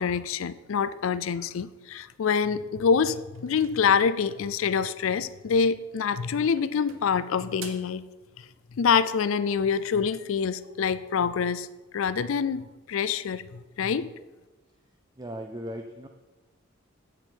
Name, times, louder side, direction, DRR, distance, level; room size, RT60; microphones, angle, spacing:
voice 1, 0.0-8.0 8.8-11.7 11.9-14.1, left 6 dB, 70° left, 15 dB, 0.4 m, -26 dB
sound 1, 3.3-4.6 5.8-6.2 6.6-8.0, right 7 dB, 70° right, 0.9 m, -48 dB
voice 2, 15.2-16.1, equal, 20° right, 4 dB, 0.4 m, -37 dB
8.7 x 7.9 x 4.5 m, 1.2 s
head